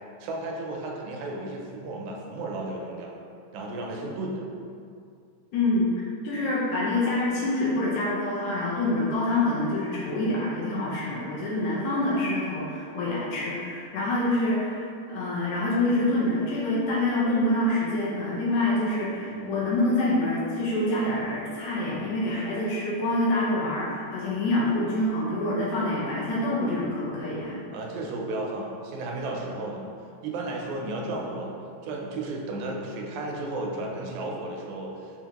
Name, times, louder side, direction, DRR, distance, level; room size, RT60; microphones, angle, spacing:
voice 1, 0.2-3.2 3.5-4.5 19.3-19.6 27.7-29.8 30.2-31.5 31.8-35.1, right 2 dB, 80° right, -1 dB, 1.8 m, -33 dB
voice 2, 5.5-27.6, left 1 dB, 75° left, -6 dB, 1.9 m, -26 dB
5.7 x 2.3 x 2.8 m, 2.4 s
omnidirectional pair, 3.4 m